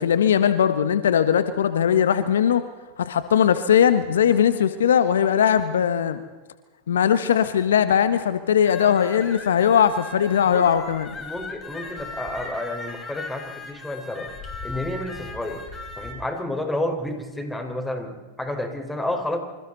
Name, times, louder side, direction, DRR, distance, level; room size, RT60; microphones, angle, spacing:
voice 1, 0.0-2.6 3.0-6.2 6.9-11.1, left 8 dB, 75° left, 11 dB, 1.4 m, -19 dB
sound 1, 8.7-16.1, left 3 dB, 20° left, 6.1 m, -38 dB
voice 2, 11.2-14.3 14.6-15.6 16.0-19.4, left 1 dB, 5° left, 4 dB, 5.0 m, -30 dB
28.5 x 26.5 x 4.2 m, 1.3 s
hypercardioid pair, 95°, 0 cm